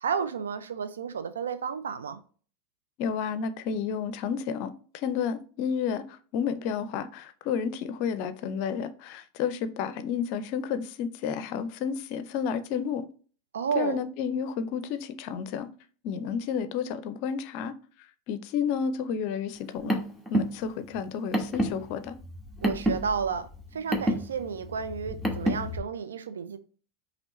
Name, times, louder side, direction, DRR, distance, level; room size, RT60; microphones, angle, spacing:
voice 1, 0.0-2.2 13.5-14.0 22.6-26.6, right 6 dB, 75° right, 0.5 m, -32 dB
voice 2, 3.0-13.1 13.7-15.7 16.0-17.7 18.3-20.0 20.3-22.2, left 7 dB, 55° left, 0.5 m, -31 dB
Car, 19.6-25.8, right 1 dB, 5° right, 1.2 m, -30 dB
5.2 x 3.0 x 3.0 m
figure-of-eight pair, 85°, 0 cm